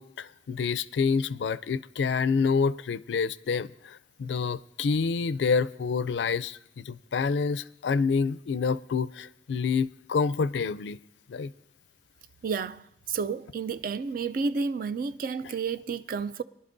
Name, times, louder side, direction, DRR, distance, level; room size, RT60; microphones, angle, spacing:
voice 1, 0.0-11.0 11.3-11.5, left 5 dB, 80° left, 0.4 m, -28 dB
voice 2, 12.4-16.4, right 5 dB, 55° right, 0.4 m, -31 dB
23.0 x 11.5 x 2.6 m
head